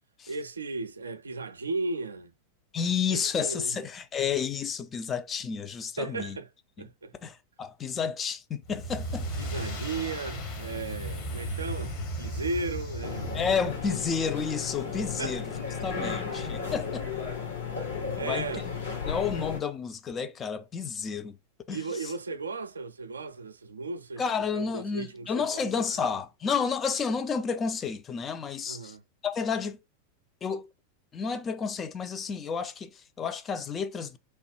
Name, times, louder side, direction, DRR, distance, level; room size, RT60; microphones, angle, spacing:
voice 1, 0.3-2.3 3.1-3.8 6.0-6.5 6.8-7.1 9.4-13.5 13.9-14.1 15.2-15.4 16.6-16.7 18.2-18.7 21.7-24.2 24.5-26.1 28.7-29.0, right 3 dB, 75° right, 0.3 m, -36 dB
voice 2, 2.7-6.4 7.2-9.3 13.3-15.4 15.8-17.1 18.2-18.5 19.0-21.4 21.7-22.1 24.2-28.9 29.2-29.8 30.4-30.7 31.1-34.2, left 6 dB, 25° left, 0.4 m, -31 dB
sound 1, 8.6-13.9, equal, 40° left, 1.0 m, -35 dB
sound 2, 13.0-19.6, left 5 dB, 75° left, 2.0 m, -34 dB
3.1 x 2.2 x 3.0 m
figure-of-eight pair, 90°, 0 cm